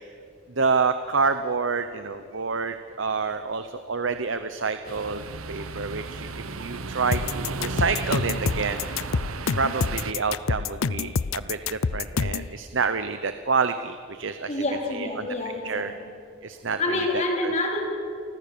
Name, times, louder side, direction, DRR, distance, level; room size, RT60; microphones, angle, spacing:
voice 1, 0.6-5.2 5.5-8.9 9.6-14.6 14.9-15.3 15.6-15.9 16.4-17.5, right 4 dB, 60° right, 10 dB, 0.9 m, -28 dB
sound 1, 4.9-10.1, right 3 dB, 85° right, 1.2 m, -34 dB
sound 2, 7.1-12.5, left 5 dB, 75° left, 0.6 m, -27 dB
voice 2, 14.5-16.1 16.8-17.9, left 2 dB, 35° left, 0 dB, 4.3 m, -27 dB
30.0 x 24.5 x 6.9 m, 2.5 s
head